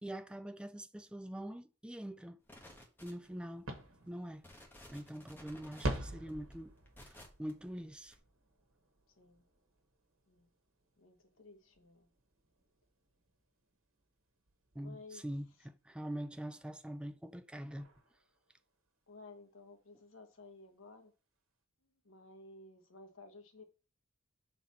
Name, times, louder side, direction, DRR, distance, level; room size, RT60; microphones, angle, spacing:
voice 1, 0.0-2.4 3.0-3.7 4.1-4.4 4.9-6.7 7.0-8.2 14.7-17.9, equal, 5° right, 0.3 m, -44 dB
sound 1, 2.5-3.5 4.0-4.1 4.4-7.5 8.1-8.2, left 1 dB, 10° left, 1.2 m, -55 dB
sound 2, 3.2-15.6 16.9-17.0 17.4-17.5 17.7-18.9, right 1 dB, 85° right, 1.3 m, -47 dB
voice 2, 11.0-12.1 14.8-15.6 19.1-21.1 22.0-23.6, left 3 dB, 75° left, 1.1 m, -55 dB
6.1 x 4.0 x 4.2 m
head